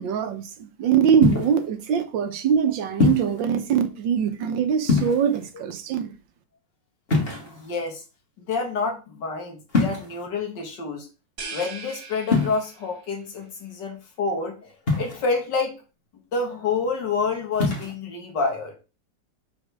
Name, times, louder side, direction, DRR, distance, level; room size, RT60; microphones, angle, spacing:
voice 1, 0.0-6.1, right 8 dB, 90° right, 1.7 m, -22 dB
sound 1, 1.2-1.6 3.0-3.4 4.8-5.5 7.1-7.8 9.7-10.2 12.3-12.6 14.9-15.4 17.5-17.9, left 4 dB, 30° left, 2.1 m, -23 dB
voice 2, 7.4-8.0 8.4-11.1 11.5-15.7 16.3-18.7, left 4 dB, 70° left, 2.2 m, -28 dB
sound 2, 11.4-13.1, right 4 dB, 50° right, 1.6 m, -39 dB
5.2 x 4.6 x 6.2 m
omnidirectional pair, 2.0 m